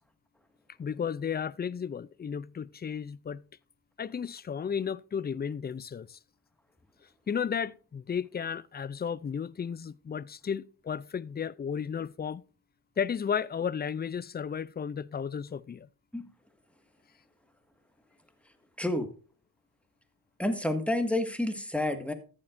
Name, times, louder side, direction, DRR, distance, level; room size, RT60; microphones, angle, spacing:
voice 1, 0.8-3.4 4.0-6.2 7.3-12.4 13.0-15.9, left 7 dB, 25° left, 0.4 m, -33 dB
voice 2, 18.8-19.1 20.4-22.1, left 1 dB, 5° left, 1.7 m, -29 dB
14.0 x 7.6 x 2.6 m
cardioid pair, 55°, 44 cm